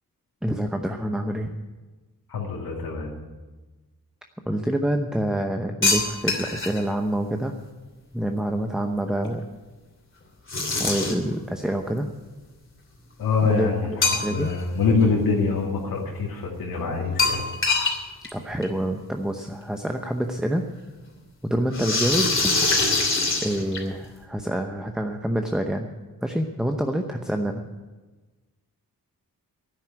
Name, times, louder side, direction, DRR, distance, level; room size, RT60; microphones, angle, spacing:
voice 1, 0.4-1.5 4.5-7.6 8.1-9.4 10.8-12.1 13.4-14.5 18.3-20.6 21.4-22.5 23.4-25.9 26.2-27.7, right 1 dB, ahead, 5 dB, 0.8 m, -27 dB
voice 2, 2.3-3.1 13.2-17.4, left 4 dB, 80° left, -3 dB, 2.3 m, -24 dB
sound 1, 5.8-6.8 10.5-11.3 14.0-14.6 15.0-15.1 17.2-18.0 18.2-18.3 18.6-18.7 19.9-20.0 21.7-24.1, left 3 dB, 35° left, 2.9 m, -23 dB
11.5 x 9.8 x 9.3 m, 1.3 s
wide cardioid pair, 115°, 35 cm